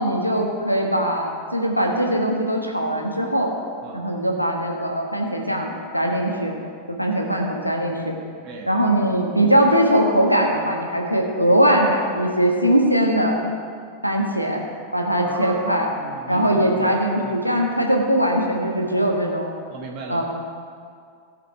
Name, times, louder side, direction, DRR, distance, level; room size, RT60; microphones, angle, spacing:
voice 1, 0.0-3.5 3.9-6.5 6.9-8.1 8.7-13.4 14.0-14.6 14.9-15.9 16.3-19.6 20.1-20.2, right 1 dB, 90° left, 1 dB, 1.3 m, -21 dB
voice 2, 8.4-8.7 15.2-16.9 17.2-17.3 19.7-20.2, right 4 dB, 40° right, 0 dB, 1.3 m, -36 dB
16.5 x 5.8 x 4.5 m, 2.2 s
figure-of-eight pair, 90°, 0 cm